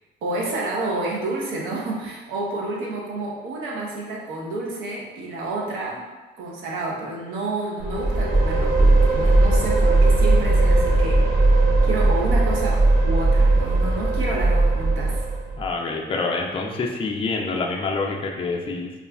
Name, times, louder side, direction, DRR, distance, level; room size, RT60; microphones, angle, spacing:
voice 1, 0.2-6.1 6.4-11.2 11.8-15.2, right 2 dB, 90° right, -3 dB, 0.7 m, -30 dB
sound 1, 7.8-15.6, right 2 dB, 50° right, 0.7 m, -18 dB
voice 2, 15.6-18.9, left 3 dB, 25° left, 0 dB, 0.4 m, -26 dB
2.4 x 2.3 x 3.3 m, 1.2 s
cardioid pair, 90°, 20 cm